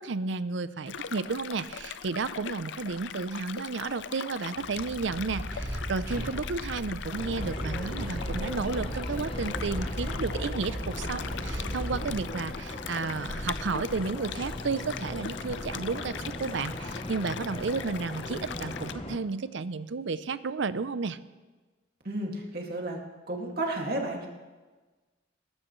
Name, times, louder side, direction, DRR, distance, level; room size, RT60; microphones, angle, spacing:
voice 1, 0.0-21.2, right 4 dB, 70° right, 14 dB, 0.6 m, -32 dB
sound 1, 0.9-18.9, left 7 dB, 65° left, 0.5 m, -41 dB
sound 2, 4.5-13.1, equal, 15° right, 4.8 m, -36 dB
sound 3, 7.1-19.2, left 1 dB, 25° left, 0.9 m, -39 dB
voice 2, 22.0-23.0 23.3-24.3, right 1 dB, 50° right, 0 dB, 2.2 m, -32 dB
20.5 x 12.5 x 3.2 m, 1.3 s
head